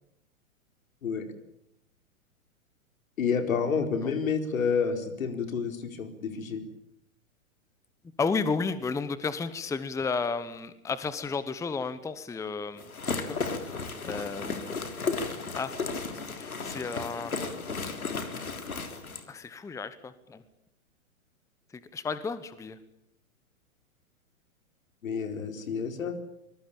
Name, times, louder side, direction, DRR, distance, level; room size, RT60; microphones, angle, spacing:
voice 1, 3.2-6.6 25.0-26.2, left 6 dB, 70° left, 8 dB, 4.5 m, -29 dB
voice 2, 8.2-12.9 13.2-13.7 14.0-14.8 15.6-15.7 16.3-17.3 19.3-20.4 21.7-22.8, left 4 dB, 5° left, 14 dB, 1.0 m, -33 dB
sound 1, 12.8-19.2, left 4 dB, 85° left, 3.8 m, -34 dB
25.5 x 21.5 x 8.8 m, 0.74 s
hypercardioid pair, 120°, 42 cm